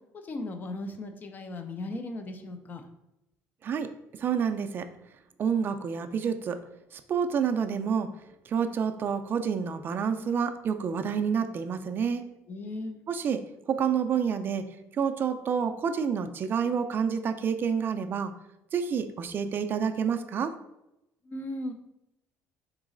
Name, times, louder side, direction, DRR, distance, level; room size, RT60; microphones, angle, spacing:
voice 1, 0.3-2.8 12.5-13.0 21.3-21.7, left 2 dB, 35° left, 6 dB, 0.5 m, -36 dB
voice 2, 3.6-4.9 5.4-6.6 6.9-8.1 8.5-12.3 13.1-18.3 18.7-20.5, right 7 dB, 40° right, 8 dB, 0.4 m, -29 dB
3.9 x 3.0 x 3.8 m, 0.88 s
cardioid pair, 125°, 5 cm